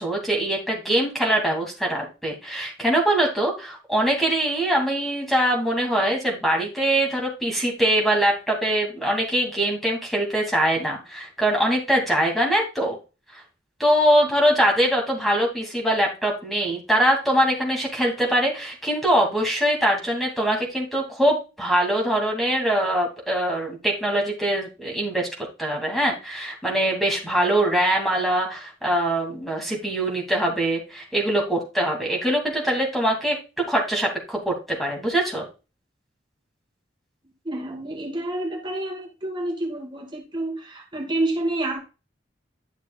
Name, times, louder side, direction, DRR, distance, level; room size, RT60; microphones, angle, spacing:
voice 1, 0.0-13.0 13.8-25.3 25.6-33.4 33.7-35.5, right 1 dB, ahead, -1 dB, 2.5 m, -23 dB
voice 2, 37.4-41.8, right 1 dB, 25° right, 1 dB, 1.9 m, -28 dB
10.5 x 6.6 x 2.4 m, 0.30 s
head